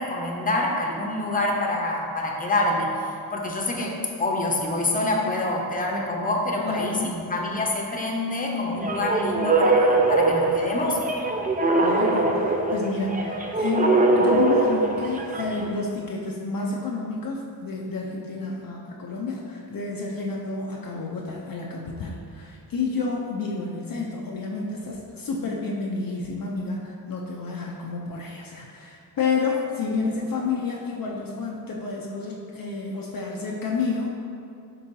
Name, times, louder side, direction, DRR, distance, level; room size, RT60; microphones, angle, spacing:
voice 1, 0.0-11.0, left 2 dB, 20° left, -1 dB, 0.7 m, -26 dB
voice 2, 6.6-7.1 11.8-34.2, left 4 dB, 50° left, -2 dB, 0.6 m, -30 dB
sound 1, 8.8-15.6, right 2 dB, 20° right, 0.4 m, -22 dB
5.3 x 3.7 x 2.7 m, 2.5 s
cardioid pair, 55°, 43 cm